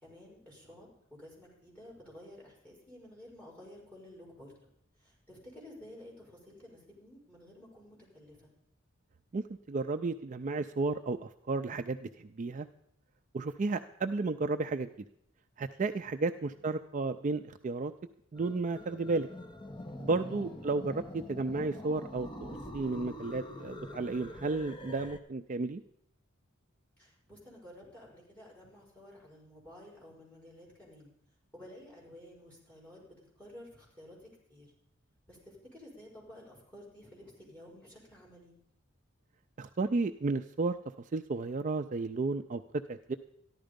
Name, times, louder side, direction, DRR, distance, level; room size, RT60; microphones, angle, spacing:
voice 1, 0.0-4.5 5.0-8.5 16.3-16.7 20.2-20.6 27.0-31.1 31.5-34.7 35.3-38.5, left 1 dB, 10° left, -3 dB, 5.2 m, -53 dB
voice 2, 9.3-12.7 13.3-14.9 15.6-17.9 18.3-19.3 20.0-25.8 39.6-40.8 41.1-42.6 42.9-43.2, right 3 dB, 35° right, 8 dB, 0.4 m, -33 dB
sound 1, 18.4-25.2, left 1 dB, 25° left, 1.1 m, -45 dB
14.0 x 11.0 x 5.2 m, 0.74 s
head